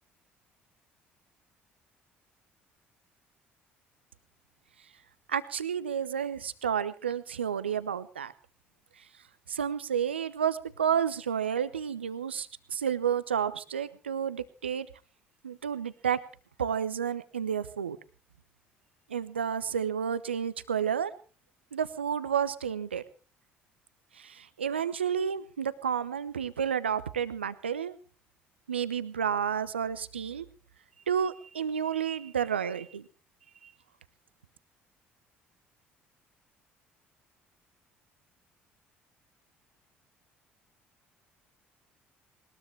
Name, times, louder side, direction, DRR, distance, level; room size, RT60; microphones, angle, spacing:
voice 1, 5.3-8.3 9.0-9.1 9.5-14.9 15.4-16.2 16.6-18.0 19.1-21.1 21.7-23.0 24.1-28.0 28.7-30.5 31.1-33.1 33.6-33.7, right 8 dB, 85° right, 15 dB, 0.8 m, -31 dB
21.0 x 20.0 x 3.3 m, 0.37 s
figure-of-eight pair, 55°, 6 cm